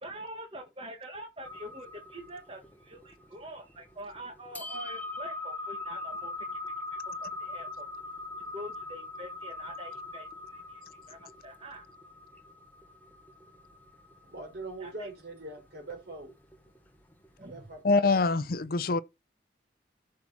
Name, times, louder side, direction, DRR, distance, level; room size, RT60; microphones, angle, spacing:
voice 1, 0.0-6.5 7.2-7.9 8.5-10.8 11.1-11.9 14.8-15.1 17.4-17.6, right 1 dB, 30° right, 1.7 m, -45 dB
sound 1, 1.4-17.8, left 2 dB, 10° left, 1.1 m, -42 dB
voice 2, 14.2-16.3 17.4-18.2, right 2 dB, 60° right, 4.5 m, -43 dB
voice 3, 17.8-19.0, left 3 dB, 55° left, 0.6 m, -24 dB
13.5 x 5.9 x 4.2 m
head